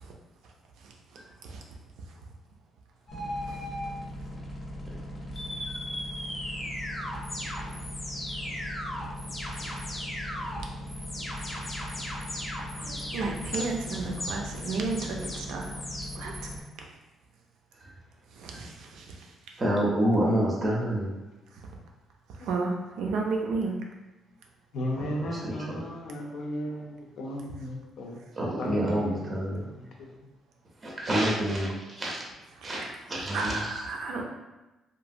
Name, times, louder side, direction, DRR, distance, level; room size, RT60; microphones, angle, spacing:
sound 1, 3.1-16.6, left 1 dB, 25° left, 0.6 m, -36 dB
voice 1, 12.8-15.7 16.1-16.3 18.4-19.0 22.5-23.7 32.6-32.8 33.3-34.2, right 3 dB, 85° right, 1 dB, 0.5 m, -32 dB
voice 2, 19.6-21.1 24.9-25.9 28.4-29.6 30.8-31.7 32.0-32.2 32.6-33.6, right 1 dB, 20° right, -3 dB, 0.6 m, -28 dB
voice 3, 24.7-26.9 27.2-28.2 28.6-29.2, left 1 dB, 65° left, 0 dB, 0.5 m, -34 dB
3.0 x 2.5 x 2.6 m, 1.1 s
cardioid pair, 160°, 0 cm